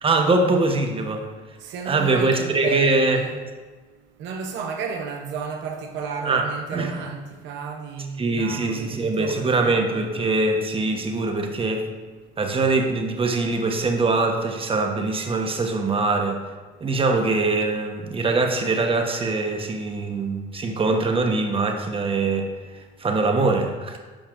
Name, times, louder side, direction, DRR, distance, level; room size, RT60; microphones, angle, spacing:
voice 1, 0.0-1.3 1.9-3.2 6.2-6.4 6.7-6.9 8.2-11.8 12.4-16.4 16.8-22.5 22.7-24.0, right 3 dB, 30° right, 1.0 m, -23 dB
voice 2, 1.6-3.5 4.2-9.7, right 5 dB, 80° right, 0.7 m, -32 dB
10.0 x 5.7 x 2.5 m
supercardioid pair, 85°, 19 cm